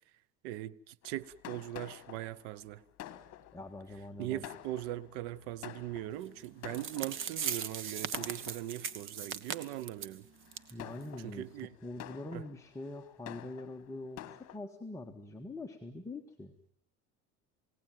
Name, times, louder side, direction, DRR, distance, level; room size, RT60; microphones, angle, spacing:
voice 1, 0.4-2.8 4.2-10.3 11.2-11.7 12.3-12.4, right 14 dB, 85° right, 1.0 m, -40 dB
Fireworks, 1.0-7.5 8.1-9.0 9.6-9.9 10.4-14.6, left 13 dB, 55° left, 1.7 m, -50 dB
voice 2, 3.5-4.4 10.7-16.6, left 2 dB, 10° left, 1.7 m, -44 dB
sound 1, 6.4-6.5 6.7-10.2 10.5-10.7 11.0-11.1 11.6-11.7, right 7 dB, 40° right, 1.4 m, -38 dB
28.5 x 17.5 x 9.3 m
cardioid pair, 120°, 31 cm